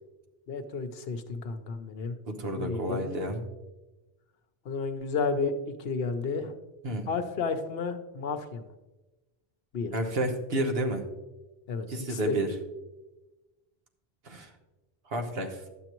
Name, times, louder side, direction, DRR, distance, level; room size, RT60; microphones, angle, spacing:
voice 1, 0.5-2.2 2.5-3.2 4.7-5.5 5.8-6.5 7.1-8.7 9.7-10.0 11.7-12.5, left 4 dB, 70° left, 8 dB, 0.9 m, -32 dB
voice 2, 2.3-3.4 6.8-7.1 9.9-11.1 11.9-12.5 14.2-14.5 15.1-15.6, right 1 dB, 70° right, 4 dB, 1.3 m, -30 dB
11.5 x 8.0 x 3.0 m, 1.1 s
omnidirectional pair, 1.1 m